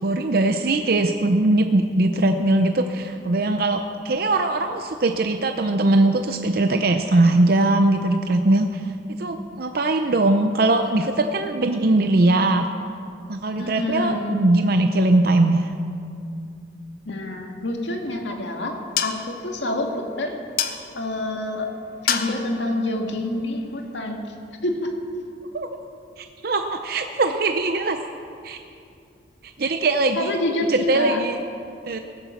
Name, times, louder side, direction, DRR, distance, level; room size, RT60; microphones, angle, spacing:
voice 1, 0.0-8.9 9.2-12.7 13.3-15.7 25.5-25.7 26.2-28.0 28.4-28.6 29.6-30.3 30.7-31.4 31.9-32.0, right 2 dB, 55° right, 6 dB, 0.6 m, -20 dB
voice 2, 13.6-14.4 17.1-20.4 20.9-21.7 22.0-24.2 24.6-24.9 30.2-31.2, left 1 dB, 75° left, 2 dB, 1.9 m, -27 dB
sound 1, 17.8-24.2, left 8 dB, 50° left, 0.9 m, -32 dB
17.0 x 9.9 x 7.1 m, 2.5 s
head